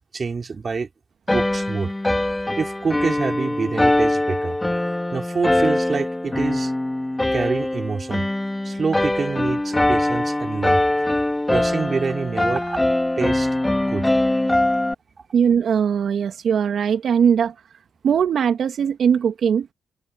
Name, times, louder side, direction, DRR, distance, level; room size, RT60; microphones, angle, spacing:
voice 1, 0.1-0.9 1.3-1.9 2.6-4.6 5.1-6.7 7.3-8.2 8.6-10.8 11.5-12.8 13.2-13.5 13.9-14.1, right 5 dB, 40° right, 4.0 m, -26 dB
sound 1, 1.3-14.9, left 1 dB, 10° left, 3.2 m, -22 dB
voice 2, 15.3-17.5 18.0-19.7, right 7 dB, 65° right, 2.6 m, -20 dB
cardioid pair, 80°, 0 cm